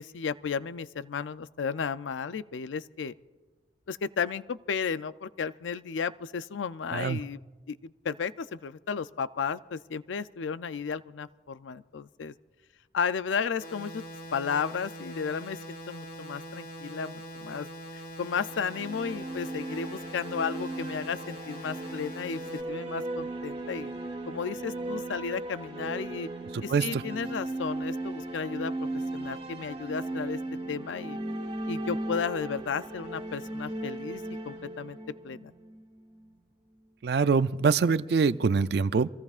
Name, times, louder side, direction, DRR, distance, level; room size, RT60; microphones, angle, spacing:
voice 1, 0.0-3.1 3.9-7.4 7.7-12.3 12.9-14.0 14.3-17.7 17.9-23.9 24.3-26.3 26.6-30.4 30.7-31.2 31.7-35.0 35.2-35.5, left 6 dB, 90° left, 14 dB, 0.5 m, -34 dB
sound 1, 13.6-22.6, equal, 60° left, 3.6 m, -43 dB
sound 2, 18.3-36.3, right 2 dB, 30° right, 2.0 m, -37 dB
voice 2, 26.7-27.0 37.0-39.1, right 5 dB, 60° right, 15 dB, 0.4 m, -24 dB
26.0 x 18.0 x 2.5 m, 1.2 s
head